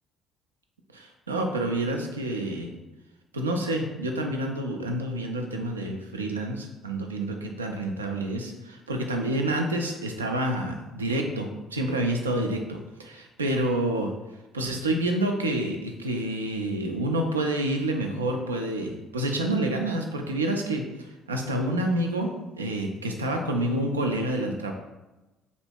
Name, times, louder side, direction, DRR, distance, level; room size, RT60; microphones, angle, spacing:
voice 1, 0.9-2.7 3.3-14.1 14.5-22.3 22.6-24.7, right 1 dB, 85° right, 3 dB, 0.3 m, -28 dB
2.8 x 2.5 x 3.5 m, 1.1 s
figure-of-eight pair, 50°, 0 cm